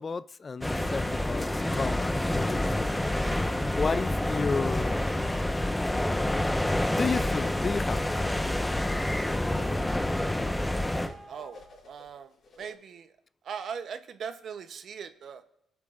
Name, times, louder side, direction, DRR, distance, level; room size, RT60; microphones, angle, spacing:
voice 1, 0.0-3.0 3.8-5.0 6.6-8.0, left 4 dB, 35° left, 16 dB, 0.3 m, -32 dB
sound 1, 0.6-11.1, left 1 dB, 10° left, 1.0 m, -28 dB
Wind instrument woodwind instrument, 7.3-11.8, left 1 dB, 10° right, 4.4 m, -51 dB
sound 2, 11.2-12.7, left 3 dB, 55° left, 3.4 m, -50 dB
voice 2, 11.3-12.3 12.6-13.1 13.4-15.4, right 7 dB, 60° right, 10 dB, 0.8 m, -39 dB
23.0 x 8.3 x 2.5 m, 0.81 s
cardioid pair, 90°, 0 cm